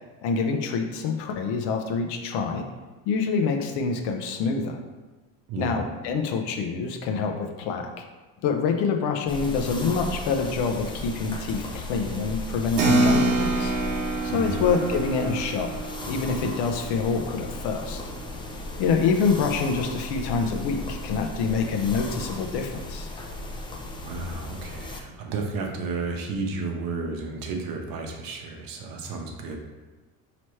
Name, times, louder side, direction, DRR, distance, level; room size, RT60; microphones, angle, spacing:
voice 1, 0.2-2.6 3.1-4.8 5.6-8.0 8.4-13.7 14.3-15.7 16.1-18.0 18.8-23.1, left 5 dB, 75° left, 4 dB, 0.7 m, -26 dB
voice 2, 5.5-5.8 14.3-14.6 24.0-29.6, right 3 dB, 55° right, 2 dB, 0.8 m, -32 dB
sound 1, 9.3-25.0, left 2 dB, 15° left, 0.3 m, -36 dB
Keyboard (musical), 12.8-18.8, right 3 dB, 85° right, 0.8 m, -27 dB
4.3 x 3.0 x 3.1 m, 1.2 s
supercardioid pair, 105°, 41 cm